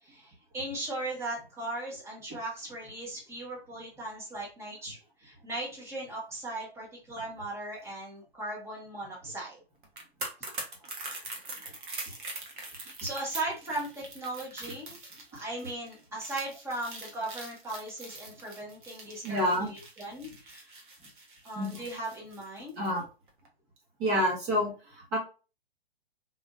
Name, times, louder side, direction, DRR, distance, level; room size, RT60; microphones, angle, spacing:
voice 1, 0.0-9.6 12.1-12.2 12.8-15.0 15.3-20.7 21.0-21.1 21.4-22.8, right 2 dB, 10° right, -3 dB, 1.4 m, -38 dB
sound 1, 9.8-23.0 23.3-23.5, right 2 dB, 50° right, 1.3 m, -43 dB
voice 2, 19.2-19.7 21.5-21.8 22.8-23.0 24.0-25.2, equal, 30° right, -2 dB, 1.7 m, -28 dB
4.2 x 3.3 x 2.5 m, 0.33 s
figure-of-eight pair, 115°, 31 cm